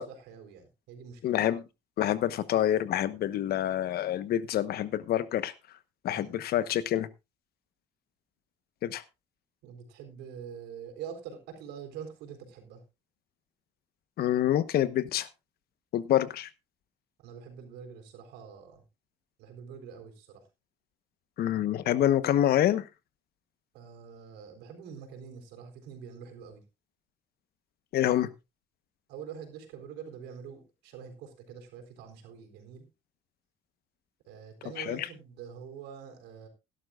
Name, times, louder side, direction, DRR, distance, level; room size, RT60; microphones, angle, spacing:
voice 1, 0.0-1.3 6.1-6.3 9.6-12.8 17.2-18.8 19.4-20.4 23.7-26.6 29.1-32.8 34.3-36.5, right 7 dB, 90° right, 5 dB, 4.1 m, -45 dB
voice 2, 1.2-1.6 2.0-5.5 6.0-7.1 8.8-9.0 14.2-15.3 15.9-16.5 21.4-22.9 27.9-28.3 34.8-35.1, left 12 dB, 65° left, 14 dB, 1.1 m, -27 dB
17.5 x 11.5 x 2.4 m, 0.25 s
cardioid pair, 110°, 17 cm